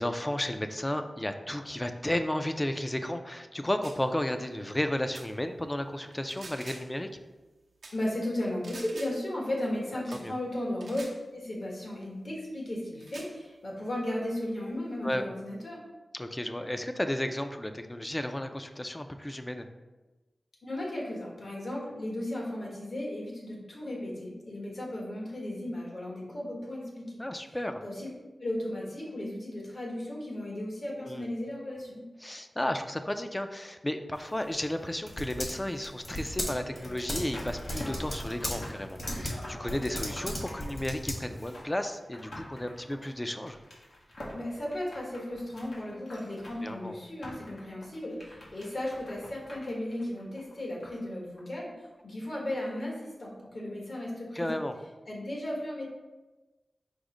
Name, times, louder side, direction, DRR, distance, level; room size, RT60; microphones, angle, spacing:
voice 1, 0.0-7.1 10.1-10.3 15.0-15.3 16.1-19.7 27.2-27.8 31.1-31.2 32.2-43.6 46.6-47.0 54.4-54.7, left 1 dB, 20° left, 7 dB, 0.4 m, -33 dB
sound 1, 3.8-4.0 5.1-5.3 6.1-7.0 7.8-8.0 8.6-9.2 10.1-10.3 10.8-11.2 12.0-12.1 13.0-13.3, right 2 dB, 90° right, 0.6 m, -47 dB
voice 2, 7.9-11.0 11.3-15.8 20.6-27.2 27.8-28.1 28.4-32.0 44.3-51.7 52.0-54.6 55.1-55.8, left 1 dB, 65° left, -3 dB, 1.4 m, -35 dB
Typing, 34.1-41.6, left 1 dB, 45° left, 1.3 m, -37 dB
sound 2, 37.1-51.1 51.4-51.5, left 1 dB, 85° left, 1.1 m, -47 dB
5.0 x 2.1 x 4.8 m, 1.1 s
cardioid pair, 50°, 0 cm